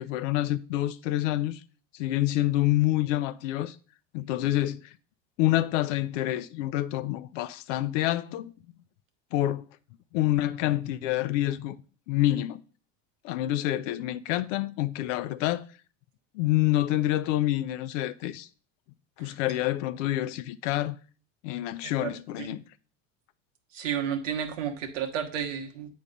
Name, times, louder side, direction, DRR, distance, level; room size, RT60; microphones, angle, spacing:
voice 1, 0.0-1.6 1.9-3.8 4.1-4.9 5.4-8.5 9.3-9.6 10.1-11.8 12.1-12.6 13.2-15.6 16.3-18.5 19.2-21.0 21.4-22.6, left 15 dB, 75° left, 0.6 m, -27 dB
voice 2, 23.7-25.9, right 8 dB, 90° right, 1.2 m, -32 dB
8.5 x 3.2 x 5.2 m
supercardioid pair, 110°, 37 cm